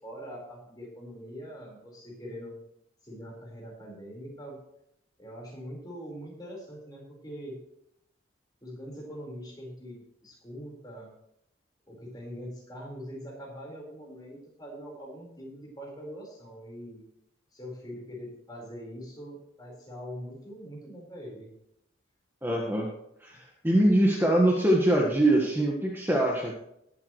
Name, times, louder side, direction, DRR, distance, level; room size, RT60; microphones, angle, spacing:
voice 1, 0.0-2.6 3.0-4.6 5.2-7.6 8.6-11.1 11.9-17.0 17.5-21.5, equal, 20° left, -2 dB, 4.8 m, -43 dB
voice 2, 22.4-22.9 23.2-26.5, right 1 dB, 10° right, -1 dB, 1.6 m, -23 dB
19.5 x 8.6 x 3.2 m, 0.79 s
head